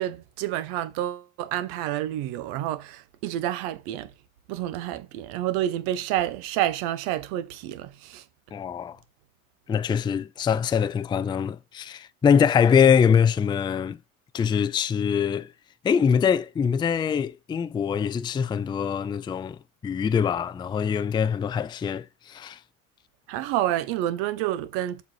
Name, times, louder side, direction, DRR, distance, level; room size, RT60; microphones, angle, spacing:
voice 1, 0.0-4.1 4.5-8.2 23.3-25.0, right 13 dB, 60° right, 1.2 m, -29 dB
voice 2, 8.5-9.0 9.7-14.0 14.3-15.5 15.8-22.6, left 7 dB, 10° left, 0.4 m, -23 dB
7.2 x 5.6 x 4.4 m
hypercardioid pair, 80°, 42 cm